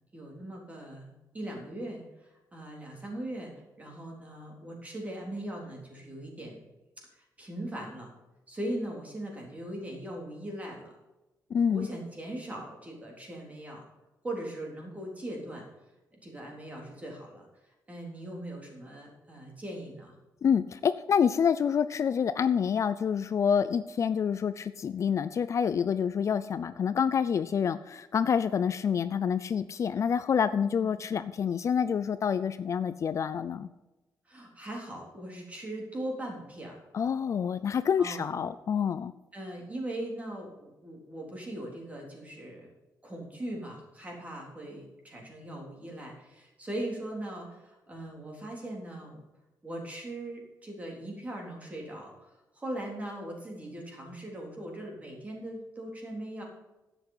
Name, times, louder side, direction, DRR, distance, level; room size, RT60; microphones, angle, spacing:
voice 1, 0.1-1.1 1.3-6.6 7.2-8.1 8.5-10.9 11.7-13.8 14.2-15.7 16.2-17.4 17.9-20.1 30.8-30.9 34.3-36.8 38.0-38.3 39.3-42.7 43.0-49.2 49.6-52.1 52.6-56.4, right 1 dB, 20° right, -1 dB, 3.7 m, -40 dB
voice 2, 11.5-11.9 20.4-33.7 36.9-39.1, left 7 dB, 45° left, 13 dB, 0.4 m, -27 dB
11.5 x 8.1 x 5.6 m, 1.1 s
wide cardioid pair, 155°, 7 cm